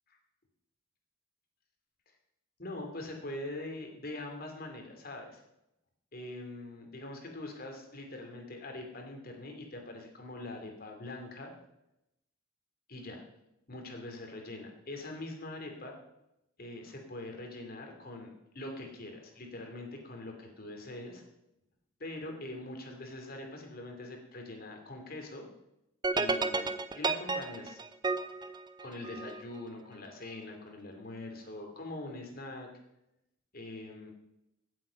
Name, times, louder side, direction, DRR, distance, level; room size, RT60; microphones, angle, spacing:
voice 1, 2.6-5.4 6.1-11.5 12.9-13.2 13.7-15.9 16.6-18.3 18.5-21.2 22.0-25.5 26.1-27.8 28.8-32.7 33.5-34.1, left 2 dB, 50° left, 3 dB, 2.7 m, -43 dB
sound 1, 26.0-29.4, right 3 dB, 20° right, 0.6 m, -32 dB
15.5 x 7.8 x 5.2 m, 0.86 s
head